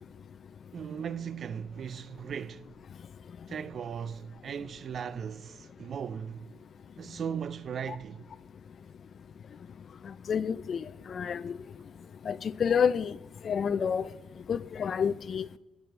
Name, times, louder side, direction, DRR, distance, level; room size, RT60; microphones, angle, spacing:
voice 1, 0.7-2.7 3.5-6.5 7.0-8.3, right 7 dB, 55° right, 0.3 m, -37 dB
voice 2, 10.3-10.8 11.1-11.5 12.3-13.1 13.5-14.1 14.5-15.4, left 7 dB, 50° left, 0.3 m, -28 dB
19.5 x 6.8 x 4.4 m
cardioid pair, 90°, 0 cm